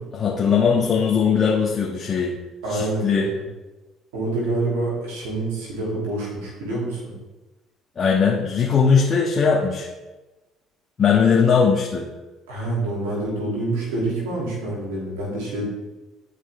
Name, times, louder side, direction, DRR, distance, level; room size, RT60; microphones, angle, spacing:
voice 1, 0.1-2.3 2.7-3.3 8.0-9.9 11.0-12.1, left 6 dB, 40° left, -3 dB, 1.3 m, -19 dB
voice 2, 2.6-3.4 4.1-7.1 12.5-15.7, right 2 dB, 90° right, -4 dB, 2.5 m, -27 dB
11.0 x 4.9 x 3.3 m, 1.1 s
hypercardioid pair, 70°, 0 cm